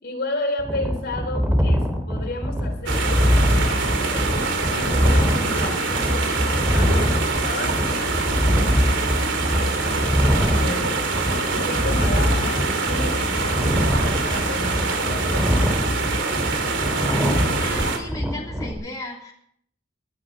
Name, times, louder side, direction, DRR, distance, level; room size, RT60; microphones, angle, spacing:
voice 1, 0.0-3.2 3.5-7.8 8.5-15.6, left 2 dB, 60° left, 3 dB, 3.6 m, -33 dB
sound 1, 0.6-18.7, equal, 10° right, 2.7 m, -23 dB
sound 2, 2.9-18.0, right 3 dB, 90° right, 2.7 m, -25 dB
voice 2, 17.6-19.3, left 2 dB, 20° left, -3 dB, 3.2 m, -35 dB
19.0 x 12.0 x 5.0 m, 0.68 s
head